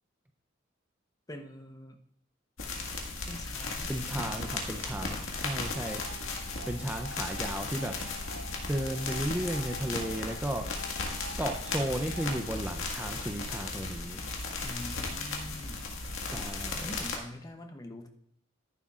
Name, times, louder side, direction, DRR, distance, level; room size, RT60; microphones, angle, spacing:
voice 1, 1.3-2.0 3.3-4.5 14.6-15.9 16.3-16.5 16.8-18.1, left 1 dB, 20° left, 5 dB, 0.8 m, -44 dB
sound 1, 2.6-17.2, left 3 dB, 80° left, 1.8 m, -36 dB
voice 2, 3.9-6.0 6.7-8.0 8.7-10.7 11.4-14.2 16.2-16.9, right 1 dB, 10° right, 4 dB, 0.5 m, -34 dB
sound 2, 5.6-12.6, left 1 dB, 75° right, 1.3 m, -47 dB
12.5 x 11.0 x 2.4 m, 0.74 s
head